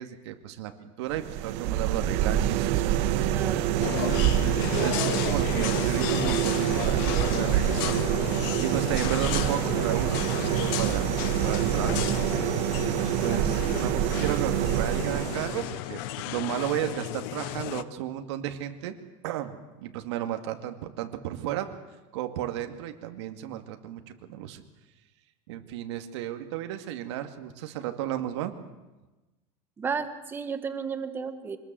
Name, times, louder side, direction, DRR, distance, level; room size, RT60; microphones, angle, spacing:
voice 1, 0.0-3.3 3.7-4.1 4.8-8.1 8.6-11.1 11.4-12.5 13.2-18.9 19.2-21.7 22.1-24.6 25.5-28.5, right 12 dB, 75° right, 6 dB, 2.3 m, -34 dB
sound 1, 1.1-15.8, right 11 dB, 45° right, 1.4 m, -26 dB
voice 2, 3.3-3.8 29.8-31.6, right 6 dB, 15° right, 9 dB, 1.4 m, -33 dB
sound 2, 3.8-17.8, left 15 dB, 55° left, 0.9 m, -33 dB
25.5 x 20.0 x 7.7 m, 1.1 s
supercardioid pair, 175°, 15 cm